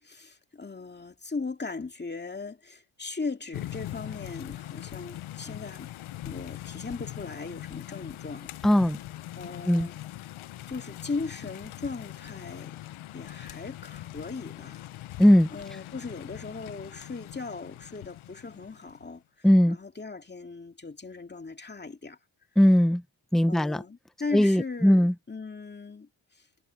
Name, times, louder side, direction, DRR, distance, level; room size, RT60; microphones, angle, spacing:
voice 1, 0.0-5.9 6.2-8.5 9.4-10.0 10.7-12.8 13.1-14.8 15.5-22.2 23.5-26.5, left 4 dB, 20° left, 2.3 m, -38 dB
sound 1, 3.5-19.1, left 14 dB, 80° left, 0.9 m, -42 dB
voice 2, 8.6-9.0 9.6-9.9 15.2-15.5 19.4-19.8 22.6-23.0 23.3-23.8 24.3-25.1, equal, ahead, 0.8 m, -19 dB
cardioid pair, 95°, 49 cm